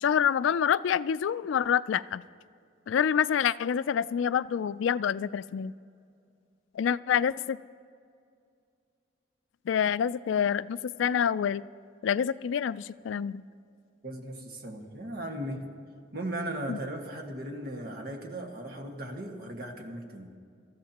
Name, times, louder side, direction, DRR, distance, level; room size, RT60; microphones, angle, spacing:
voice 1, 0.0-2.2 2.9-5.7 6.8-7.6 9.7-11.6 12.0-13.4 16.7-16.8, left 8 dB, 85° left, 17 dB, 0.3 m, -27 dB
voice 2, 14.0-15.6 16.1-20.3, right 1 dB, 55° right, 1 dB, 1.7 m, -37 dB
25.5 x 14.0 x 2.9 m, 2.4 s
head